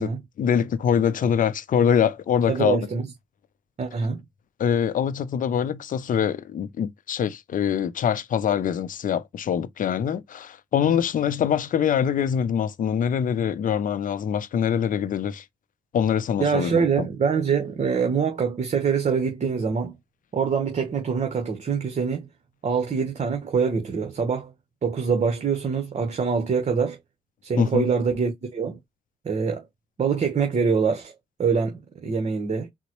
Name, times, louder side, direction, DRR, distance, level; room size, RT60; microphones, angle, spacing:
voice 1, 0.0-2.8 4.6-15.4 15.9-17.1 27.6-27.9, left 8 dB, 60° left, 0.5 m, -24 dB
voice 2, 2.5-3.1 3.8-4.2 16.4-19.9 20.3-22.3 22.6-24.5 24.8-27.0 27.4-28.8 29.2-29.6 30.0-31.1 31.4-32.7, right 5 dB, 50° right, 1.0 m, -24 dB
3.8 x 2.1 x 3.0 m
cardioid pair, 60°, 15 cm